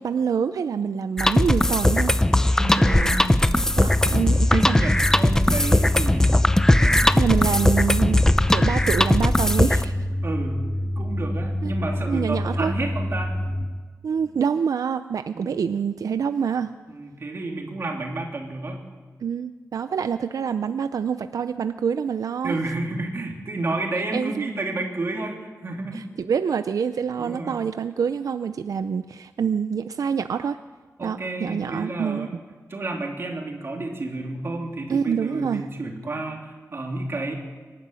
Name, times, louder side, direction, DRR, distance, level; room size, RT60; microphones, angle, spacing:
voice 1, 0.0-2.1 2.8-3.1 3.8-4.8 7.1-10.0 11.6-11.7 12.1-12.7 14.0-16.7 19.2-22.6 24.1-24.5 25.9-30.6 31.0-32.3 34.9-35.7, right 7 dB, 85° right, 11 dB, 0.5 m, -26 dB
sound 1, 1.2-9.8, left 1 dB, 10° left, 0.6 m, -19 dB
voice 2, 2.6-3.8 4.5-7.7 10.2-10.7 11.0-13.3 15.3-15.6 16.9-18.8 22.4-26.1 27.2-27.6 31.0-32.3 32.7-37.3, right 2 dB, 45° right, 1 dB, 3.2 m, -31 dB
sound 2, 3.6-13.6, equal, 60° right, 4.2 m, -27 dB
24.5 x 11.5 x 9.0 m, 1.4 s
wide cardioid pair, 160°, 6 cm